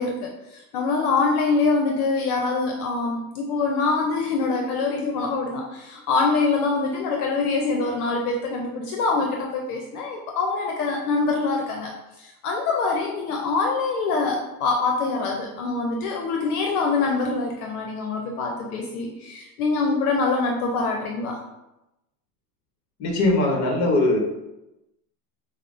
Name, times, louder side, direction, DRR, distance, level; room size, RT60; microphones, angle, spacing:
voice 1, 0.0-11.9 12.2-21.4, left 4 dB, 65° left, 1 dB, 0.7 m, -24 dB
voice 2, 23.0-24.2, left 2 dB, 35° left, 1 dB, 1.0 m, -20 dB
5.3 x 2.0 x 2.5 m, 0.94 s
supercardioid pair, 120°, 48 cm